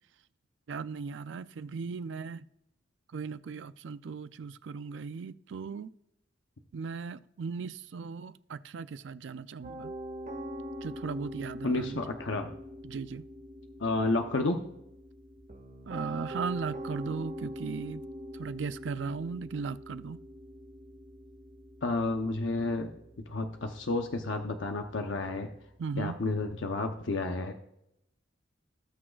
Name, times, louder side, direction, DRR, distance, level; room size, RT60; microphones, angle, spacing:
voice 1, 0.7-2.5 3.1-5.9 6.7-9.9 10.8-12.0 12.8-13.2 15.8-18.0 18.3-20.2 25.8-26.2, right 5 dB, 70° right, 0.4 m, -37 dB
Piano, 9.6-26.7, equal, 45° right, 1.8 m, -44 dB
voice 2, 11.6-12.5 13.8-14.6 21.8-22.9 23.3-25.5 26.0-27.5, left 2 dB, 80° left, 0.8 m, -31 dB
18.0 x 6.2 x 2.3 m
head